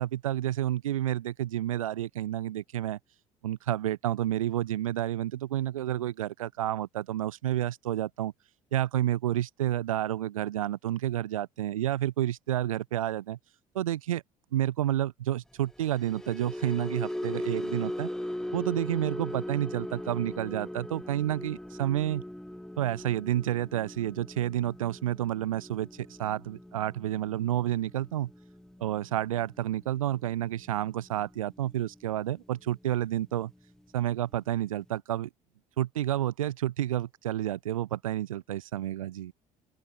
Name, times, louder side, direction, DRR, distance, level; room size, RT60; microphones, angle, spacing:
voice 1, 0.0-3.0 3.4-8.3 8.7-13.4 13.7-14.2 14.5-18.1 18.5-22.2 22.8-28.3 28.8-33.5 33.9-35.3 35.8-39.3, right 12 dB, 80° right, 0.6 m, -30 dB
sound 1, 15.7-32.0 32.4-32.7 33.0-33.3, left 1 dB, 5° left, 1.0 m, -39 dB
open air
figure-of-eight pair, 55°, 17 cm